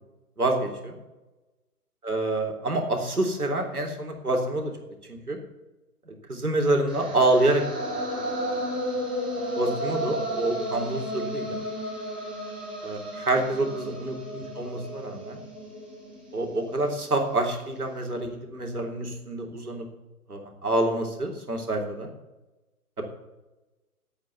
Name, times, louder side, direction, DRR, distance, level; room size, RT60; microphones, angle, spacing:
voice 1, 0.4-1.0 2.0-4.7 5.1-5.4 6.1-7.6 9.6-11.6 12.8-15.4 16.3-19.9 20.3-22.1 23.0-23.1, right 2 dB, 70° right, 1 dB, 3.4 m, -27 dB
sound 1, 6.9-16.9, equal, 5° right, 0.7 m, -33 dB
9.7 x 8.6 x 8.1 m, 1.1 s
figure-of-eight pair, 140°, 45 cm